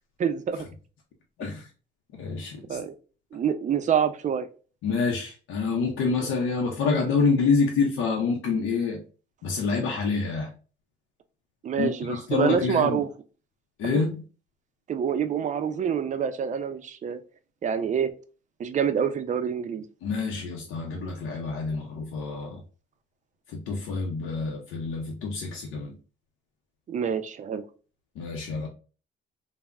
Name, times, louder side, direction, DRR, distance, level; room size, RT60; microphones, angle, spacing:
voice 1, 0.2-0.6 2.7-2.9 3.3-4.5 11.6-13.1 13.9-14.0 14.9-17.2 17.6-18.1 18.6-19.8 26.9-27.6, right 7 dB, 40° right, 10 dB, 0.4 m, -26 dB
voice 2, 1.4-1.7 2.2-2.8 4.8-9.0 9.4-10.5 11.8-13.0 13.8-14.2 20.0-22.6 23.5-26.0 28.2-28.7, left 4 dB, 85° left, 0 dB, 0.5 m, -27 dB
3.3 x 2.0 x 2.3 m, 0.36 s
cardioid pair, 90°, 20 cm